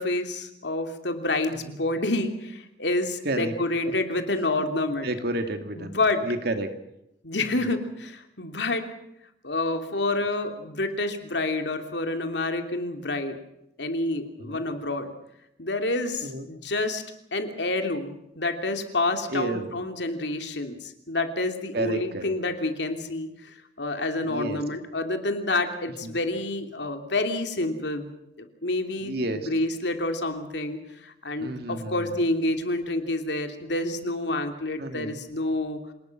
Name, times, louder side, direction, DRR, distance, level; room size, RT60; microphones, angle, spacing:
voice 1, 0.0-5.1 5.8-6.2 7.2-8.8 9.4-13.4 13.8-15.1 15.6-17.0 17.3-28.1 28.4-35.9, left 2 dB, 70° left, 6 dB, 3.0 m, -28 dB
voice 2, 5.0-6.7 7.5-7.6 14.4-14.6 16.2-16.5 19.3-19.7 21.7-22.3 24.2-24.6 26.0-26.2 29.0-29.5 31.4-32.2 34.8-35.2, right 1 dB, 60° right, 7 dB, 2.5 m, -31 dB
27.5 x 19.5 x 6.1 m, 0.83 s
head